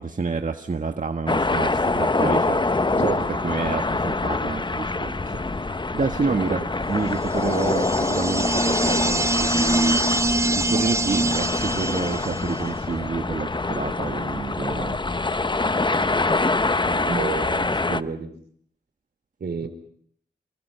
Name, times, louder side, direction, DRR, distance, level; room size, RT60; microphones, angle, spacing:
voice 1, 0.0-2.6 3.0-6.6 6.9-10.0 10.5-15.0 19.6-19.7, right 4 dB, 45° right, 5 dB, 1.6 m, -29 dB
sound 1, 1.3-18.0, left 3 dB, 25° left, 0.9 m, -25 dB
voice 2, 6.3-6.7 16.9-18.3 19.4-19.7, right 5 dB, 70° right, 9 dB, 4.1 m, -30 dB
sound 2, 7.3-12.7, right 2 dB, 15° right, 1.0 m, -24 dB
29.5 x 24.0 x 5.8 m, 0.64 s
cardioid pair, 65°, 18 cm